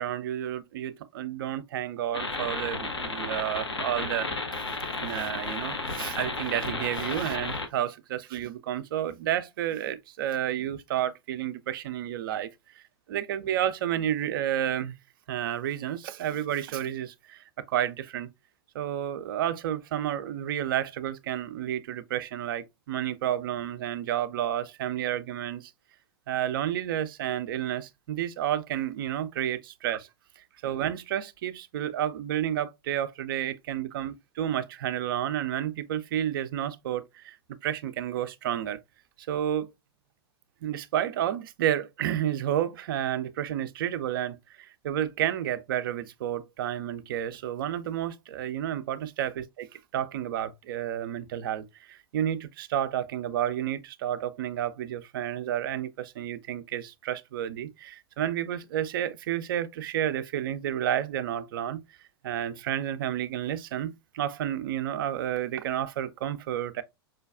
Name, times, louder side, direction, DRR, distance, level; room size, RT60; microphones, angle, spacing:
voice 1, 0.0-4.3 5.0-12.8 13.1-14.9 15.3-18.3 18.7-25.7 26.3-30.1 30.4-37.4 37.6-38.8 39.2-39.7 40.6-61.8 62.2-66.8, right 11 dB, 55° right, 0.4 m, -31 dB
sound 1, 2.1-7.7, left 3 dB, 85° left, 0.7 m, -33 dB
5.0 x 2.2 x 2.3 m
figure-of-eight pair, 95°, 14 cm